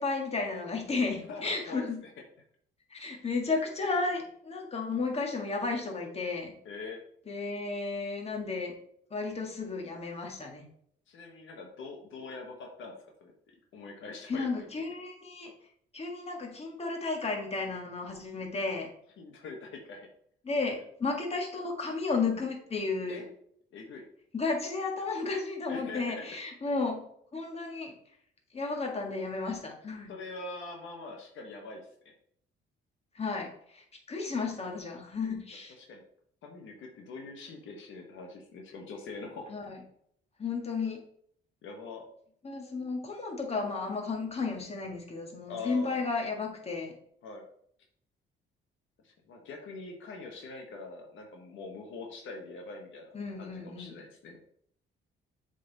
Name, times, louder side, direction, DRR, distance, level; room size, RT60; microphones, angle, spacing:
voice 1, 0.0-2.0 2.9-6.5 7.3-8.7 9.1-10.7 14.3-15.5 15.9-18.9 20.4-23.2 24.3-27.0 27.3-27.9 28.5-30.1 33.1-35.8 39.5-39.8 40.4-41.0 42.4-46.9 53.1-53.9, left 4 dB, 30° left, 1 dB, 1.8 m, -33 dB
voice 2, 1.3-2.1 6.6-7.0 11.1-12.9 13.2-13.3 13.7-14.7 19.2-20.1 23.1-23.3 23.7-24.0 25.7-26.2 30.1-32.1 35.8-36.0 36.4-39.4 41.6-42.0 45.5-46.1 47.2-47.4 49.0-54.4, left 3 dB, 75° left, 2 dB, 1.2 m, -43 dB
7.4 x 4.0 x 4.0 m, 0.67 s
cardioid pair, 90°, 20 cm